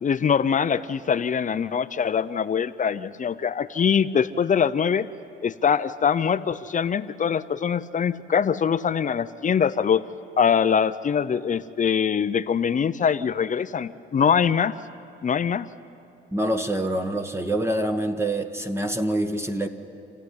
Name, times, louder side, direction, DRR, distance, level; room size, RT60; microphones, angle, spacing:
voice 1, 0.0-5.1 5.4-10.0 10.4-14.7 15.2-15.7, left 7 dB, 40° left, 14 dB, 0.7 m, -23 dB
voice 2, 16.3-19.7, right 1 dB, 15° right, 6 dB, 1.4 m, -26 dB
28.0 x 14.5 x 9.8 m, 2.8 s
cardioid pair, 90°, 20 cm